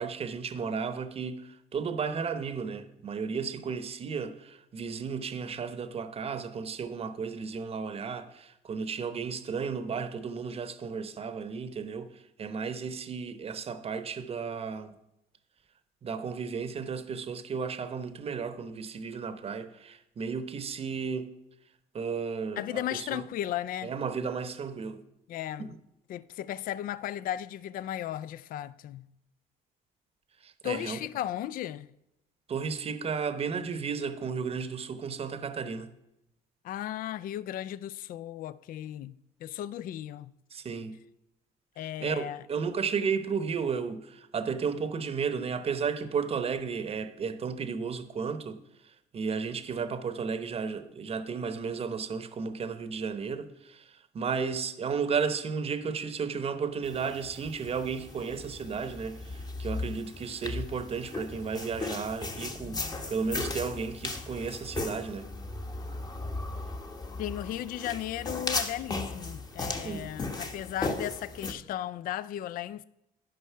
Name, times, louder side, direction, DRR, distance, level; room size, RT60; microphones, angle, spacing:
voice 1, 0.0-14.9 16.0-21.3 21.9-23.2 23.8-25.0 25.6-25.8 30.4-31.0 32.5-35.9 40.5-41.0 41.8-65.3 69.8-70.1, right 5 dB, 35° right, 0.8 m, -34 dB
voice 2, 22.6-23.9 25.3-25.7 26.1-29.1 30.6-31.9 36.6-39.1 39.4-40.3 41.8-42.4 67.2-72.8, left 12 dB, 55° left, 0.4 m, -35 dB
sound 1, 56.8-71.5, left 3 dB, 25° left, 1.0 m, -37 dB
11.5 x 5.4 x 5.6 m
cardioid pair, 110°, 17 cm